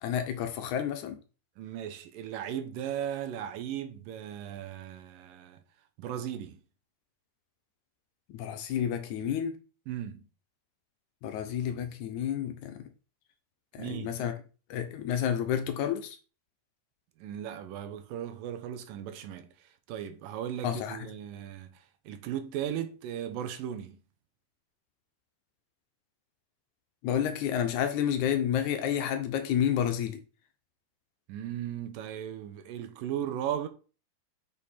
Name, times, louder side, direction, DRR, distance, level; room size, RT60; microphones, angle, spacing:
voice 1, 0.0-1.2 8.3-9.5 11.2-12.9 13.8-14.3 14.7-16.2 20.6-21.0 27.0-30.2, left 9 dB, 70° left, 2.1 m, -30 dB
voice 2, 1.6-5.6 6.0-6.6 9.9-10.3 13.8-14.2 17.2-19.5 19.9-21.7 22.1-24.0 31.3-33.7, right 10 dB, 90° right, 2.6 m, -37 dB
6.5 x 5.1 x 4.3 m
omnidirectional pair, 3.9 m